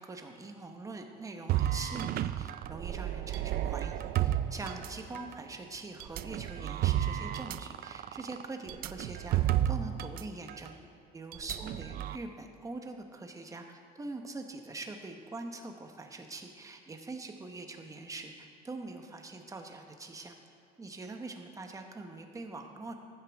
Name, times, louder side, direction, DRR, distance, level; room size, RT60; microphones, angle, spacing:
voice 1, 0.0-10.8 11.1-20.4 20.8-22.9, right 3 dB, 20° right, 4 dB, 1.0 m, -43 dB
sound 1, 1.5-5.4 6.0-10.2 10.5-10.7 11.3-12.2, right 12 dB, 60° right, 0.4 m, -32 dB
15.0 x 9.9 x 3.5 m, 2.3 s
cardioid pair, 110°, 17 cm